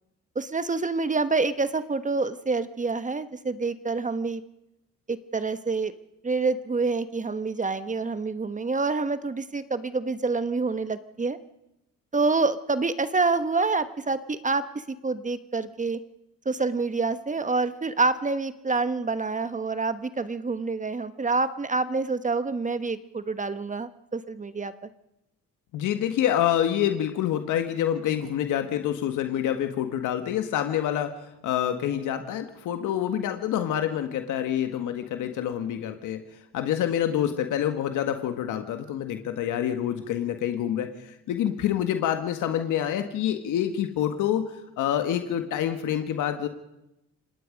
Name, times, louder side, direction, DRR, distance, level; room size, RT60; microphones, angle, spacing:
voice 1, 0.3-4.4 5.1-5.9 6.2-11.4 12.1-16.0 16.4-24.7, right 3 dB, 25° right, 12 dB, 1.2 m, -27 dB
voice 2, 25.7-31.2 31.4-36.2 36.5-46.5, left 10 dB, 85° left, 7 dB, 1.7 m, -27 dB
29.0 x 18.5 x 5.2 m, 0.87 s
cardioid pair, 90°, 30 cm